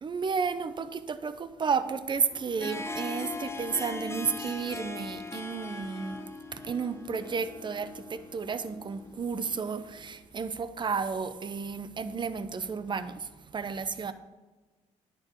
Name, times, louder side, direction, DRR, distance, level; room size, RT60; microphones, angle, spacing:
voice 1, 0.0-6.2 6.5-14.1, right 5 dB, 35° right, 13 dB, 0.7 m, -32 dB
Harp, 2.3-10.1, left 3 dB, 20° left, 0.8 m, -40 dB
10.5 x 7.0 x 4.5 m, 1.2 s
cardioid pair, 75°, 13 cm